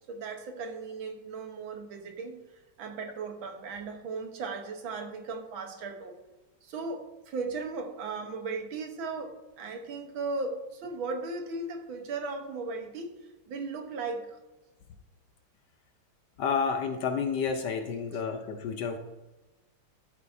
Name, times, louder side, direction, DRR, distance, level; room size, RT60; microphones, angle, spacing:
voice 1, 0.1-2.4 2.8-6.2 6.6-13.2 13.5-14.4, right 3 dB, 75° right, 5 dB, 1.8 m, -37 dB
voice 2, 16.4-19.0, left 6 dB, 70° left, 6 dB, 1.1 m, -30 dB
12.5 x 8.8 x 2.6 m, 1.1 s
omnidirectional pair, 2.3 m